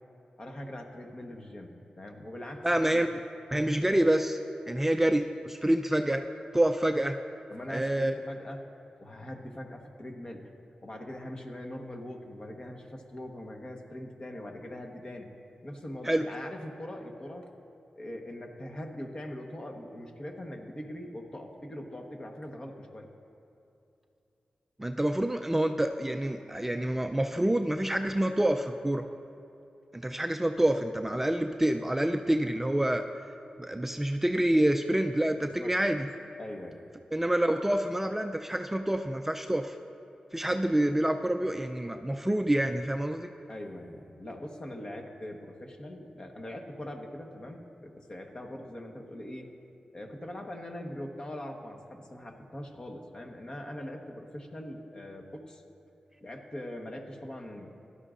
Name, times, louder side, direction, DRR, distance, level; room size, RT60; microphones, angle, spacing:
voice 1, 0.4-3.1 7.5-8.6 9.0-10.5 10.8-15.3 15.6-17.5 17.9-23.1 35.4-35.7 36.4-36.8 43.5-49.5 49.9-55.6 56.2-57.7, left 1 dB, 35° left, 2 dB, 1.2 m, -42 dB
voice 2, 2.6-3.2 3.5-4.4 4.7-6.2 6.5-7.2 7.7-8.1 16.0-16.2 24.8-29.0 29.9-33.0 33.6-36.1 37.1-39.7 40.3-43.3, right 1 dB, 10° right, 5 dB, 0.4 m, -27 dB
16.5 x 11.5 x 2.5 m, 2.8 s
wide cardioid pair, 80°, 2 cm